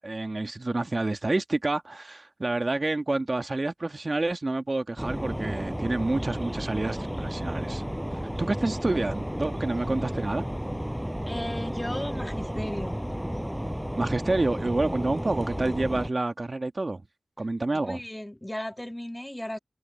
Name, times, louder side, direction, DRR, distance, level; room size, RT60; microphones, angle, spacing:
voice 1, 0.0-7.8 8.4-10.4 14.0-17.0 17.4-18.0, right 2 dB, 45° right, 1.4 m, -28 dB
sound 1, 5.0-16.1, equal, 5° right, 6.9 m, -32 dB
voice 2, 11.3-13.0 17.7-19.6, left 1 dB, 15° left, 1.6 m, -35 dB
wide cardioid pair, 55°, 0 cm